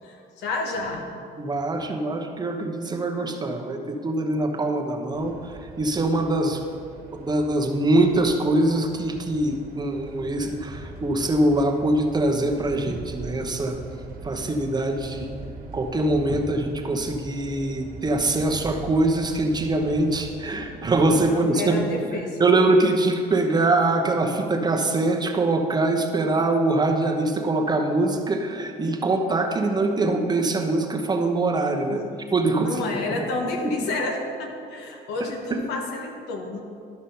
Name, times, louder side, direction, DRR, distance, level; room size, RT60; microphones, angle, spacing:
voice 1, 0.0-1.0 21.2-22.4 31.9-32.0 32.6-36.6, left 3 dB, 85° left, 2 dB, 1.4 m, -30 dB
voice 2, 1.4-6.6 7.1-13.8 14.2-15.3 15.7-32.0 32.3-32.8 35.2-35.6, right 2 dB, 25° right, 3 dB, 1.0 m, -23 dB
sound 1, 5.1-21.4, right 3 dB, 60° right, 1.4 m, -41 dB
11.5 x 6.1 x 5.6 m, 2.4 s
cardioid pair, 110°, 17 cm